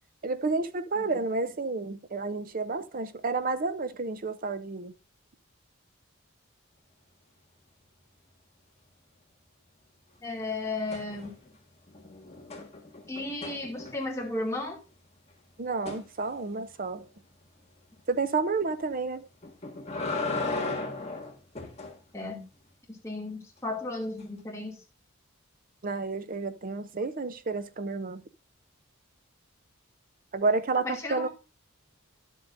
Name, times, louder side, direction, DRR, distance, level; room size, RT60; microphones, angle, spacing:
voice 1, 0.2-4.9 15.6-17.1 18.1-19.3 25.8-28.2 30.3-31.3, right 3 dB, 40° right, 0.6 m, -30 dB
voice 2, 10.2-11.3 13.1-14.8 22.1-22.4 23.0-24.8 30.8-31.3, left 2 dB, 15° left, 2.4 m, -34 dB
sound 1, 10.9-11.6 11.9-14.3 15.9-16.1 19.4-22.0 24.2-24.3, left 3 dB, 30° left, 1.7 m, -35 dB
11.0 x 7.3 x 2.6 m
head